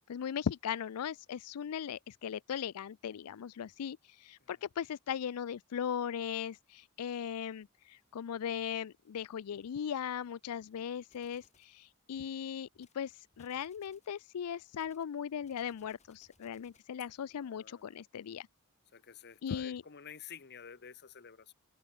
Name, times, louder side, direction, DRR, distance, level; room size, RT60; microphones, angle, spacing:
voice 1, 0.0-18.5 19.4-19.8, left 8 dB, 85° left, 0.4 m, -38 dB
sound 1, 11.1-11.8 12.7-13.0 13.3-14.2 14.8-17.0, left 4 dB, 30° left, 8.0 m, -69 dB
voice 2, 17.3-18.0 18.9-21.5, left 7 dB, 50° left, 1.0 m, -51 dB
open air
head